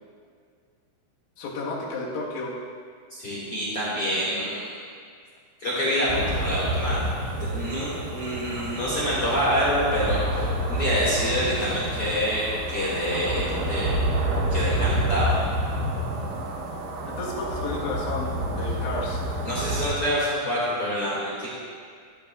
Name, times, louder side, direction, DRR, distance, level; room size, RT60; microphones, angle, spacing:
voice 1, 1.4-2.5 17.1-19.2, left 2 dB, 65° left, -4 dB, 3.3 m, -32 dB
voice 2, 3.1-4.7 5.6-7.0 7.5-14.0 14.5-15.4 19.4-21.5, equal, 50° left, -8 dB, 1.8 m, -26 dB
sound 1, 6.1-20.0, right 1 dB, 75° right, 3.5 m, -28 dB
14.5 x 12.0 x 2.4 m, 2.1 s
omnidirectional pair, 5.8 m